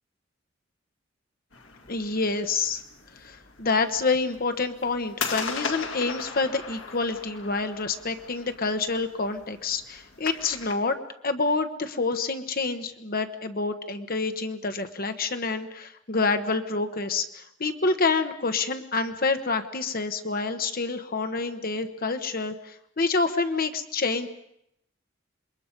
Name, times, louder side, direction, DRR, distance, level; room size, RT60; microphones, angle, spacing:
sound 1, 1.5-10.7, left 5 dB, 70° left, 2.2 m, -38 dB
voice 1, 1.9-2.8 3.2-11.0 11.2-24.3, left 3 dB, 50° left, 7 dB, 1.2 m, -27 dB
27.0 x 23.0 x 5.3 m, 0.76 s
head